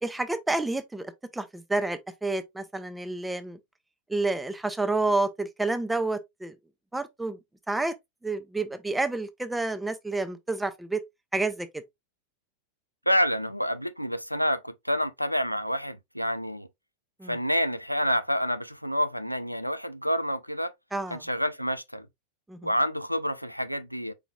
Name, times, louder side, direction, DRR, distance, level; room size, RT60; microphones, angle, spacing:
voice 1, 0.0-3.6 4.1-6.6 6.9-7.4 7.7-7.9 8.2-11.0 11.3-11.7 17.2-17.4 20.9-21.2 22.5-22.6, right 2 dB, 5° right, 0.6 m, -29 dB
voice 2, 13.1-16.7 17.3-20.7 21.1-22.1 22.6-24.1, equal, 90° right, 0.4 m, -28 dB
4.8 x 4.0 x 2.3 m
figure-of-eight pair, 90°, 0 cm